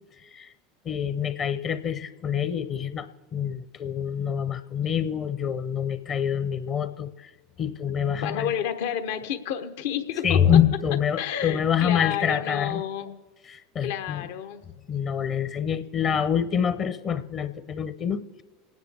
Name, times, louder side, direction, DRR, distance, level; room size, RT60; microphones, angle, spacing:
voice 1, 0.2-0.5 0.8-7.3 7.6-8.5 10.2-12.8 13.4-14.3 14.9-18.4, left 8 dB, 40° left, 11 dB, 0.8 m, -26 dB
voice 2, 8.2-10.4 11.2-13.2 13.8-14.6, left 9 dB, 70° left, 8 dB, 1.0 m, -30 dB
28.5 x 9.6 x 3.4 m, 1.3 s
hypercardioid pair, 90°, 0 cm